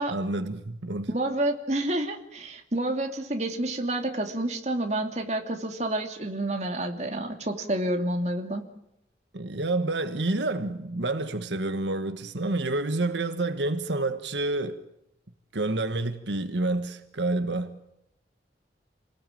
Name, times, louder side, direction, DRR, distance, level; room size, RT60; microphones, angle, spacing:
voice 1, 0.1-1.1 9.3-14.8 15.5-17.8, right 2 dB, 85° right, 1.4 m, -28 dB
voice 2, 1.1-8.6, right 1 dB, 40° right, 2.7 m, -29 dB
28.5 x 19.5 x 9.0 m
head